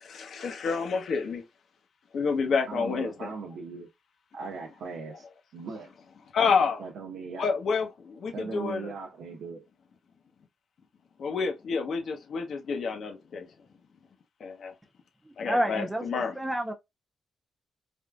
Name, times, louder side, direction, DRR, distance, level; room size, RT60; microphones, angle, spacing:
voice 1, 0.0-1.4 2.1-3.3 6.3-6.8 7.4-8.9 11.2-13.5 14.4-14.7 15.4-16.3, left 5 dB, 60° left, 0.8 m, -29 dB
voice 2, 2.7-3.9 4.3-5.3 5.5-5.9 6.8-7.5 8.3-9.6, right 4 dB, 80° right, 0.8 m, -39 dB
voice 3, 15.3-16.7, equal, 10° right, 0.4 m, -30 dB
3.4 x 2.5 x 2.3 m
cardioid pair, 95°, 0 cm